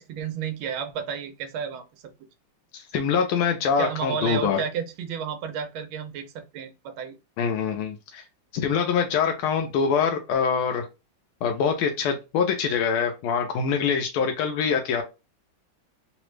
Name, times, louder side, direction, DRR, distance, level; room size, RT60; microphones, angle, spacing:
voice 1, 0.0-2.0 3.8-7.2, right 7 dB, 80° right, 1.4 m, -32 dB
voice 2, 2.7-4.6 7.4-8.2 8.5-10.8 11.4-15.0, left 6 dB, 85° left, 1.4 m, -24 dB
3.8 x 2.0 x 3.1 m
omnidirectional pair, 2.3 m